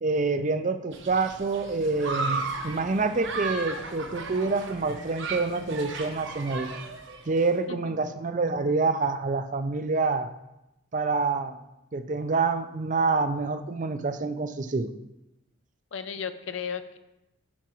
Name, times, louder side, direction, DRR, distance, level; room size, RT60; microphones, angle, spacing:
voice 1, 0.0-6.7 7.3-10.3 10.9-11.6 11.9-14.9, right 3 dB, 40° right, 10 dB, 0.4 m, -27 dB
Human group actions, 0.9-7.5, right 3 dB, 65° right, 1.0 m, -35 dB
voice 2, 7.7-8.1 15.9-17.0, left 6 dB, 70° left, 11 dB, 0.5 m, -35 dB
13.0 x 5.8 x 3.0 m, 0.93 s
head